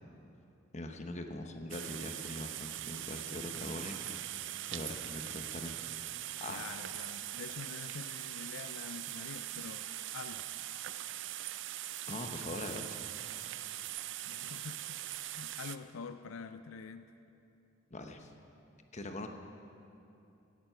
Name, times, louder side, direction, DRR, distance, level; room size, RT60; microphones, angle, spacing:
voice 1, 0.7-4.2 4.7-6.7 12.1-13.1 17.9-18.3 18.9-19.3, left 1 dB, 35° left, 5 dB, 0.9 m, -42 dB
sound 1, 1.7-15.8, right 13 dB, 60° right, 0.5 m, -41 dB
voice 2, 6.5-10.4 14.3-17.1, left 5 dB, 85° left, 10 dB, 0.5 m, -46 dB
17.0 x 9.4 x 5.6 m, 2.7 s
head